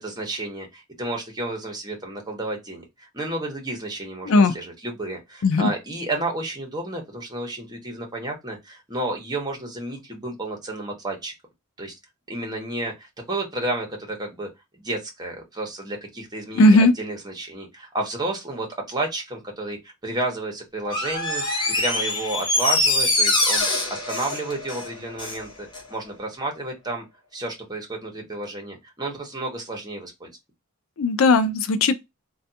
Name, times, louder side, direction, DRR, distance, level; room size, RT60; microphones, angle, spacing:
voice 1, 0.0-11.3 11.8-11.9 12.3-27.0 27.3-30.3, right 2 dB, 20° right, 1.0 m, -31 dB
voice 2, 16.6-16.9 31.0-31.9, left 2 dB, 65° left, 0.4 m, -16 dB
Door, 20.8-25.4 25.7-25.8, left 2 dB, 20° left, 0.8 m, -24 dB
3.3 x 2.3 x 2.7 m
head